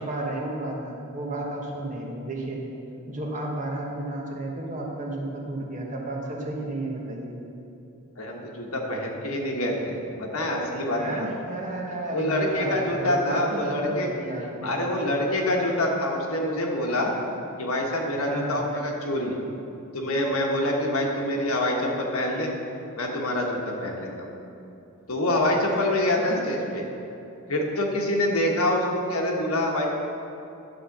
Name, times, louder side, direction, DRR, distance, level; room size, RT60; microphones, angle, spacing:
voice 1, 0.0-2.6 3.1-7.4 10.9-14.8 18.3-18.7, right 2 dB, 35° right, -1 dB, 1.3 m, -32 dB
voice 2, 8.2-11.3 12.1-14.1 14.6-17.1 17.6-19.4 19.9-22.5 23.0-24.3 25.1-26.9 27.5-29.9, left 1 dB, 75° left, 0 dB, 1.4 m, -26 dB
11.0 x 3.8 x 7.2 m, 2.8 s
head